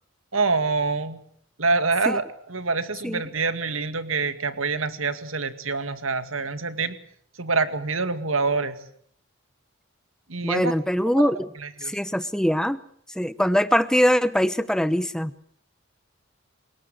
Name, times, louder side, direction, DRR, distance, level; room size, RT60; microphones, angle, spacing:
voice 1, 0.3-1.2 1.6-7.0 7.4-8.8 10.3-10.7 11.2-11.3 11.6-11.9, right 4 dB, 85° right, 11 dB, 2.2 m, -26 dB
voice 2, 10.4-11.5 11.8-12.8 13.2-15.3, equal, 5° left, 14 dB, 0.9 m, -22 dB
28.5 x 18.5 x 8.0 m, 0.66 s
head